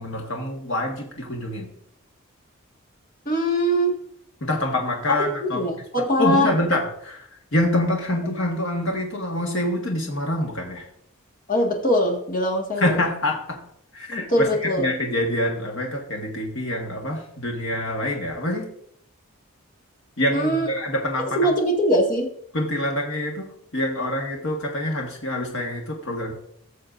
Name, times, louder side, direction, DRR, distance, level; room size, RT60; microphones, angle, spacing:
voice 1, 0.0-1.7 4.4-5.6 6.2-10.9 12.8-13.6 13.9-18.7 20.2-21.5 22.5-23.5 23.7-26.3, left 1 dB, 60° left, -1 dB, 1.6 m, -26 dB
voice 2, 3.3-3.9 5.4-6.5 11.5-13.0 14.3-14.9 20.3-20.7 21.2-22.3, equal, 40° left, -1 dB, 1.8 m, -22 dB
17.0 x 6.9 x 2.6 m, 0.69 s
head